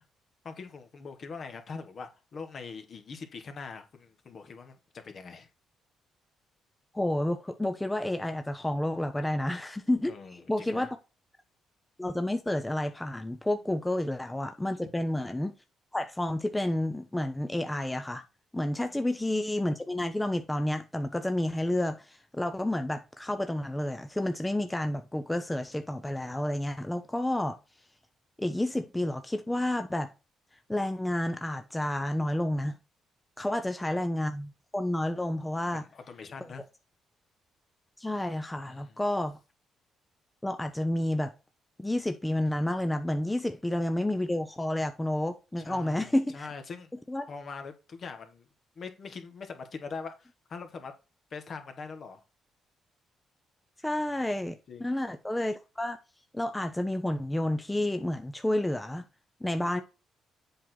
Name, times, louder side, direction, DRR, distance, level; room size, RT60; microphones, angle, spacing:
voice 1, 0.4-5.5 10.1-10.9 18.8-19.0 35.6-36.6 38.6-39.0 45.6-46.9 47.3-48.4 48.7-50.9 51.3-52.2 54.7-54.9, left 5 dB, 50° left, 1.6 m, -43 dB
voice 2, 6.9-11.0 12.0-15.5 15.9-18.2 18.5-27.6 28.4-30.1 30.7-32.8 33.4-35.8 38.0-39.4 40.4-41.3 41.8-46.5 47.1-47.3 53.8-56.0 56.3-59.0 59.4-59.8, left 1 dB, 10° left, 0.8 m, -30 dB
7.7 x 4.5 x 4.0 m
cardioid pair, 90°, 0 cm